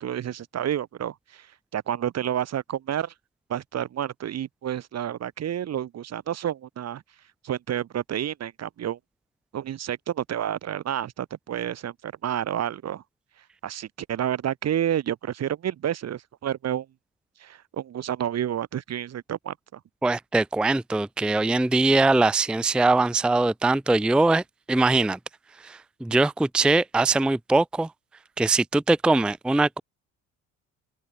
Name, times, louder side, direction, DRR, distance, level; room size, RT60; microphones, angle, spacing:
voice 1, 0.0-1.5 1.7-3.1 3.5-7.0 7.4-9.0 9.5-13.0 13.6-16.9 17.4-19.8, right 10 dB, 40° right, 0.9 m, -30 dB
voice 2, 20.0-25.2 25.6-27.9 28.4-29.8, right 2 dB, ahead, 0.5 m, -22 dB
hypercardioid pair, 55°, 39 cm